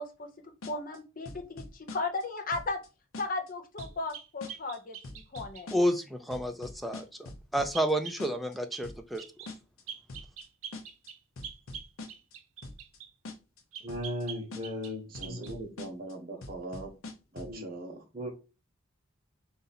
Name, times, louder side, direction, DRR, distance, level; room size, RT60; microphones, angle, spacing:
voice 1, 0.0-2.8 3.2-5.7, left 3 dB, 40° left, 6 dB, 0.7 m, -36 dB
sound 1, 0.6-1.0 1.3-2.2 2.5-2.9 3.1-3.5 3.8-4.1 4.4-4.8 5.0-6.0 6.3-7.9 8.2-8.6 8.8-9.2 9.5-9.8 10.1-10.5 10.7-11.1 11.4-12.3 12.6-13.0 13.3-13.6 13.9-14.2 14.5-14.9 15.1-16.1 16.4-17.6, left 2 dB, 80° left, 0.7 m, -44 dB
sound 2, 3.8-5.7 7.7-8.2 8.7-8.9 9.2-9.5 9.9-13.1 13.7-15.0 15.2-15.5, right 8 dB, 85° right, 0.6 m, -44 dB
voice 2, 5.7-9.2, equal, ahead, 6 dB, 0.4 m, -30 dB
voice 3, 13.8-15.7 17.4-17.7 18.1-18.3, left 1 dB, 20° right, -4 dB, 1.0 m, -37 dB
voice 4, 15.1-16.9 17.3-18.0, right 2 dB, 45° right, 3 dB, 0.9 m, -41 dB
4.0 x 2.6 x 4.0 m, 0.30 s
head